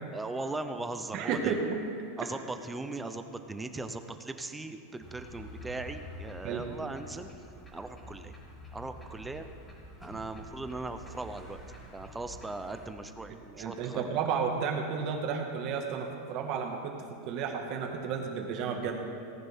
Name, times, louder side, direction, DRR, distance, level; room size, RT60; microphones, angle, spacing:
voice 1, 0.1-1.6 2.2-7.3 7.7-8.3 8.7-9.5 10.0-11.6 11.9-14.0, right 2 dB, 10° right, 8 dB, 0.6 m, -39 dB
voice 2, 1.1-1.6 6.4-6.6 13.3-17.0 17.2-19.0, right 6 dB, 45° right, 3 dB, 1.7 m, -32 dB
sound 1, 5.0-12.9, equal, 15° left, 3.1 m, -47 dB
18.0 x 10.0 x 3.6 m, 2.8 s
supercardioid pair, 150°, 0 cm